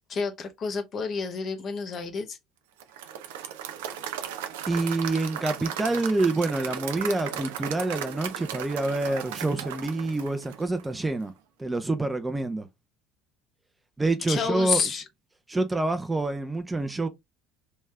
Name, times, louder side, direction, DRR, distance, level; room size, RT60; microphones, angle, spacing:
voice 1, 0.1-2.4 14.3-15.0, left 5 dB, 40° left, 1.1 m, -29 dB
Applause / Crowd, 2.8-11.0, right 9 dB, 70° right, 0.5 m, -36 dB
voice 2, 4.7-11.3 11.6-12.7 14.0-14.8 15.5-17.1, right 2 dB, 15° right, 0.6 m, -27 dB
3.5 x 3.1 x 3.3 m
figure-of-eight pair, 60°, 0 cm